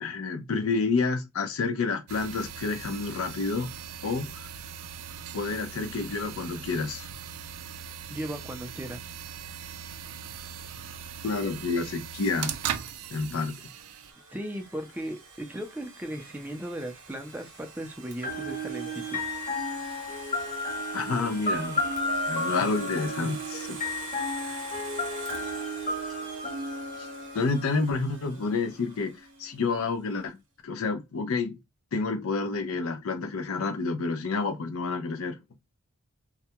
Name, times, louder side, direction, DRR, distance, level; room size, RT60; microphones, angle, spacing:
voice 1, 0.0-3.7 4.0-4.5 5.3-7.1 11.2-12.6 13.1-13.6 20.9-21.8 22.3-23.8 24.5-24.6 27.3-30.4 30.6-31.6 31.9-35.4, left 4 dB, 65° left, 0.4 m, -29 dB
sound 1, 2.1-14.1, right 8 dB, 85° right, 0.3 m, -39 dB
voice 2, 8.1-9.0 14.3-19.2, right 1 dB, 10° right, 0.4 m, -37 dB
Domestic sounds home sounds, 12.9-29.6, right 4 dB, 55° right, 0.7 m, -46 dB
sound 2, 18.2-28.0, left 1 dB, 35° left, 1.0 m, -32 dB
2.3 x 2.2 x 2.7 m
head